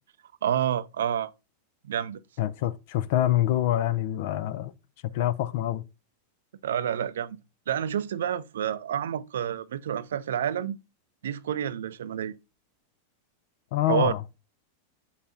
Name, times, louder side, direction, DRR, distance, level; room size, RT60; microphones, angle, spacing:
voice 1, 0.4-1.3 1.8-2.2 6.6-7.4 7.7-10.8 11.2-12.3 13.9-14.1, right 9 dB, 60° right, 0.5 m, -28 dB
voice 2, 2.4-4.7 5.1-5.8 13.7-14.2, left 13 dB, 50° left, 0.7 m, -26 dB
7.4 x 5.6 x 4.1 m
figure-of-eight pair, 90°, 0 cm